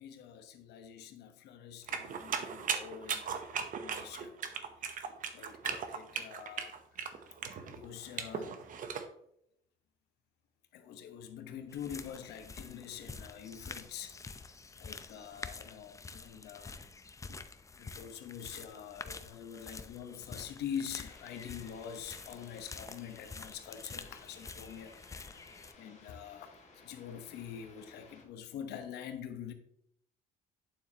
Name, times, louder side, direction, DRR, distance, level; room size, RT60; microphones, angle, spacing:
voice 1, 0.0-4.3 5.3-7.2 7.7-8.6 10.7-14.5 14.8-16.8 17.3-17.4 17.7-24.9 25.8-29.5, left 8 dB, 80° left, 1.1 m, -45 dB
sound 1, 1.9-9.0, right 6 dB, 50° right, 0.9 m, -37 dB
sound 2, 11.7-25.7, left 4 dB, 20° left, 0.6 m, -48 dB
sound 3, 21.0-28.3, left 3 dB, 40° left, 2.2 m, -59 dB
9.0 x 7.3 x 2.9 m
cardioid pair, 110°, 17 cm